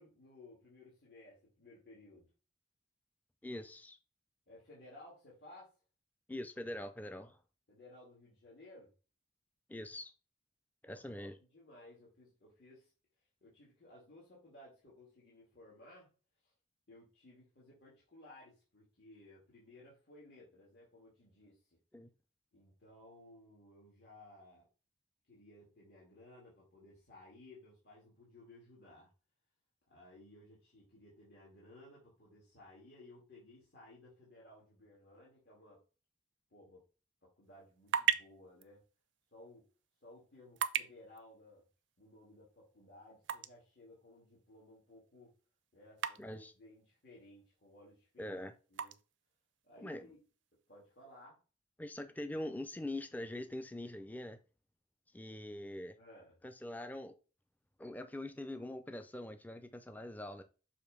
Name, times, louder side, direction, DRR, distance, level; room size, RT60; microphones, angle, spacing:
voice 1, 0.0-2.3 4.5-5.7 7.7-8.9 10.8-12.9 13.4-16.1 16.9-21.6 22.5-24.6 25.3-29.1 29.9-35.8 36.5-36.8 37.4-38.8 39.3-39.6 40.0-41.7 42.0-45.3 45.7-48.4 48.7-48.9 49.6-50.2 50.7-51.4 55.3-55.4 56.0-56.4, left 1 dB, 60° left, 2.3 m, -58 dB
voice 2, 3.4-4.0 6.3-7.4 9.7-10.1 10.8-11.4 21.9-22.1 46.2-46.5 48.2-48.5 49.8-50.1 51.8-54.4 55.1-56.0 56.4-57.1 57.8-60.4, left 1 dB, 10° left, 0.4 m, -43 dB
sound 1, 37.4-51.2, right 8 dB, 85° right, 0.5 m, -43 dB
6.6 x 3.1 x 5.2 m
head